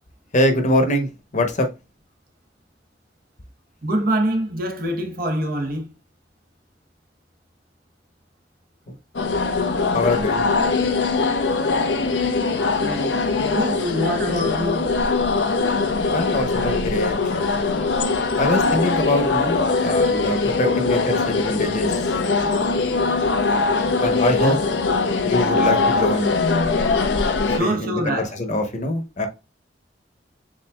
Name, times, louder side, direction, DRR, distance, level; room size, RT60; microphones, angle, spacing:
voice 1, 0.3-1.7 8.9-9.0 9.9-10.4 16.1-17.2 18.4-22.0 24.0-24.6 25.2-26.3 27.5-29.3, left 1 dB, 45° left, 0.9 m, -23 dB
voice 2, 3.8-5.9 12.8-14.8 24.3-24.6 27.5-28.3, equal, 55° right, 1.0 m, -25 dB
sound 1, 9.1-27.6, left 3 dB, 85° left, 0.6 m, -21 dB
7.2 x 2.6 x 2.3 m
head